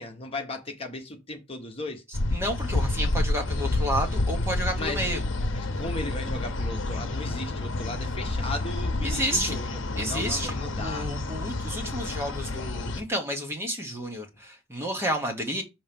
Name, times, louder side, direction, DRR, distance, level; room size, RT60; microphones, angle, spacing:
voice 1, 0.0-2.0 4.8-5.1 5.5-11.1, left 2 dB, 30° left, 1.2 m, -36 dB
sound 1, 2.1-13.0, left 2 dB, 80° left, 0.8 m, -29 dB
voice 2, 2.3-5.2 9.0-9.6 10.0-10.5 10.8-15.6, equal, 15° right, 1.1 m, -30 dB
6.3 x 2.9 x 5.2 m
head